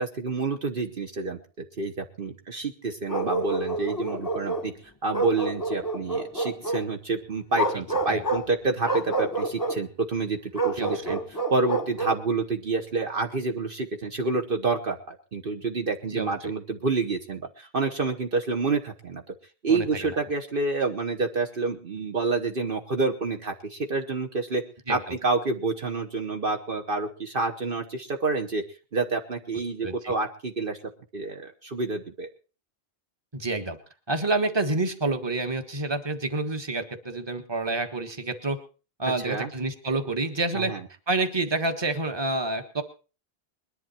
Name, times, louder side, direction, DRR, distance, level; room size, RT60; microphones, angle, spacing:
voice 1, 0.0-1.4 1.8-4.7 5.0-11.2 11.5-19.2 19.6-24.6 24.9-28.6 28.9-30.8 31.1-32.3 39.1-39.5 40.5-40.8, right 3 dB, 55° right, 4 dB, 1.4 m, -28 dB
Bark, 3.1-4.7 5.1-6.9 7.5-8.5 8.8-9.8 10.6-12.2, right 2 dB, 20° left, 0.9 m, -28 dB
voice 2, 10.8-11.2 16.1-16.3 19.7-20.1 24.9-25.0 29.8-30.1 33.3-33.8 34.1-38.6 39.0-40.7 41.1-42.8, right 2 dB, 25° right, 7 dB, 1.5 m, -28 dB
21.0 x 11.0 x 4.4 m, 0.36 s
omnidirectional pair, 1.1 m